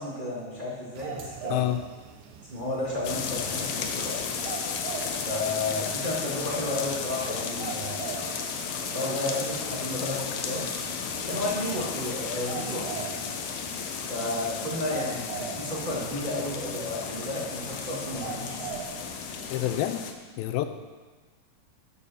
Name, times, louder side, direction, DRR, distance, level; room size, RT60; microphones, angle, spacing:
voice 1, 0.0-1.6 2.5-4.2 5.1-8.2 8.8-10.7 11.2-13.0 14.1-18.8, left 1 dB, 20° right, -7 dB, 1.7 m, -32 dB
sound 1, 1.0-19.8, right 6 dB, 85° right, 2.8 m, -43 dB
voice 2, 1.5-1.8 19.5-20.7, left 13 dB, 90° left, 9 dB, 2.5 m, -28 dB
sound 2, 3.0-20.1, left 6 dB, 70° left, 1.6 m, -34 dB
10.5 x 6.7 x 6.9 m, 1.3 s
omnidirectional pair, 4.1 m